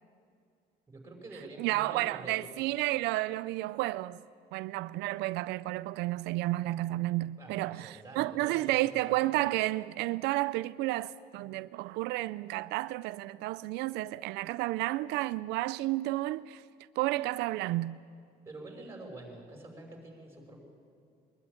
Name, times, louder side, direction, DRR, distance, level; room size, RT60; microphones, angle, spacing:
voice 1, 0.9-2.5 7.4-9.4 18.5-20.6, right 2 dB, 15° right, 5.5 m, -47 dB
voice 2, 1.6-4.2 4.5-16.6 17.0-18.0, right 18 dB, 90° right, 0.4 m, -31 dB
22.5 x 12.5 x 9.8 m
cardioid pair, 110°, 17 cm